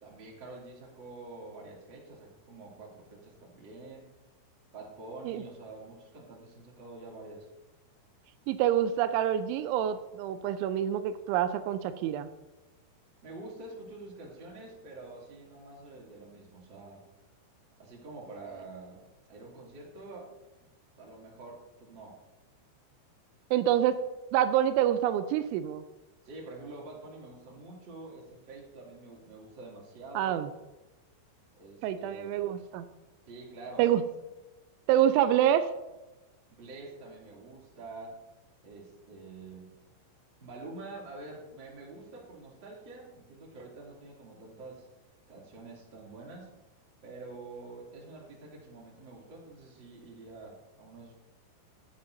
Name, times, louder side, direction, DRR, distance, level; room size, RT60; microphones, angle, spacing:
voice 1, 0.0-4.1 4.7-7.5 13.2-17.0 17.8-20.3 21.0-22.2 26.2-30.4 31.6-32.3 33.3-33.9 36.5-38.2 38.6-39.8 40.4-44.9 45.3-46.5 47.0-51.1, right 2 dB, 30° right, -4 dB, 2.5 m, -47 dB
voice 2, 8.5-12.3 23.5-24.0 24.3-25.8 30.2-30.5 31.8-32.8 33.8-34.0 34.9-35.7, right 11 dB, 85° right, 10 dB, 2.9 m, -26 dB
16.0 x 8.9 x 2.7 m, 1.1 s
omnidirectional pair, 5.4 m